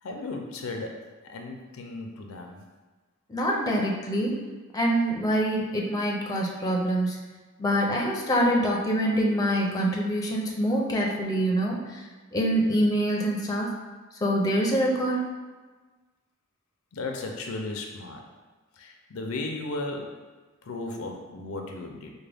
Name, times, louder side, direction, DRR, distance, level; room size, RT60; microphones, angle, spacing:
voice 1, 0.0-2.6 16.9-18.2 18.7-20.2 20.6-22.1, left 2 dB, 80° left, 2 dB, 0.5 m, -35 dB
voice 2, 3.3-4.4 4.7-7.2 7.6-12.0 12.3-13.7 14.2-15.2, equal, 20° left, -2 dB, 0.5 m, -25 dB
4.6 x 2.2 x 3.4 m, 1.3 s
head